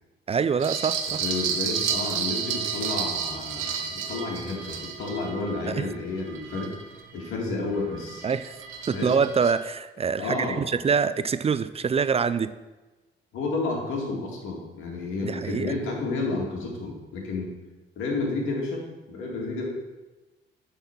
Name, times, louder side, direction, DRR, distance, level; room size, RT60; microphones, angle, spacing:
voice 1, 0.3-1.2 5.7-5.8 8.2-8.5 8.9-12.5 15.2-15.7, right 6 dB, 30° right, 13 dB, 0.4 m, -25 dB
sound 1, 0.6-7.3 7.7-9.5, right 7 dB, 80° right, 0.9 m, -31 dB
voice 2, 1.2-6.7 7.1-8.3 8.9-9.2 10.2-10.7 13.3-17.5 18.0-19.7, left 3 dB, 85° left, -1 dB, 2.2 m, -31 dB
8.9 x 4.2 x 5.9 m, 1.1 s
cardioid pair, 90°, 20 cm